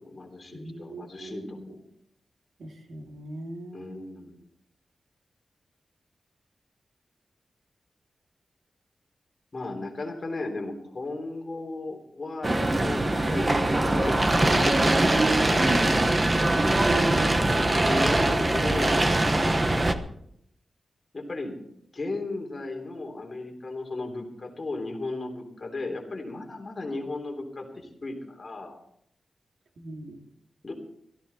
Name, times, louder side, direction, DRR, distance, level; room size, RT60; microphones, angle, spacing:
voice 1, 0.0-1.7 3.7-4.4 9.5-16.1 17.5-19.0 21.1-21.6 21.9-28.8 30.6-30.7, left 2 dB, 35° left, 2 dB, 3.5 m, -35 dB
voice 2, 0.5-1.8 2.6-4.1 16.8-17.6 29.8-30.2, right 2 dB, 85° right, 2 dB, 2.6 m, -37 dB
sound 1, 12.4-19.9, right 2 dB, 25° right, 1.1 m, -22 dB
17.0 x 14.5 x 4.3 m, 0.71 s
wide cardioid pair, 140°, 0 cm